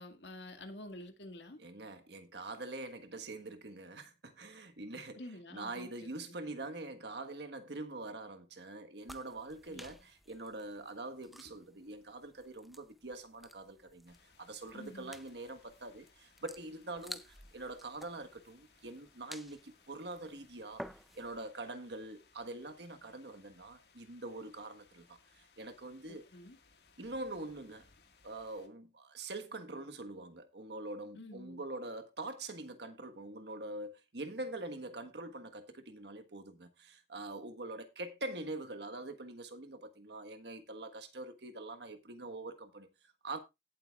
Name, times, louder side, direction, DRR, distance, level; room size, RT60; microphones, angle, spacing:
voice 1, 0.0-1.6 4.9-6.1 9.7-9.8 14.7-15.1 26.1-26.6 31.1-31.6, left 1 dB, 90° left, 2.0 m, -49 dB
voice 2, 1.6-5.2 5.5-20.9 21.1-26.3 27.0-27.9 28.2-43.4, right 2 dB, 80° right, 1.4 m, -44 dB
sound 1, 9.0-21.4, equal, ahead, 0.5 m, -54 dB
sound 2, 14.1-28.7, left 5 dB, 70° left, 1.8 m, -67 dB
17.0 x 7.8 x 2.4 m
head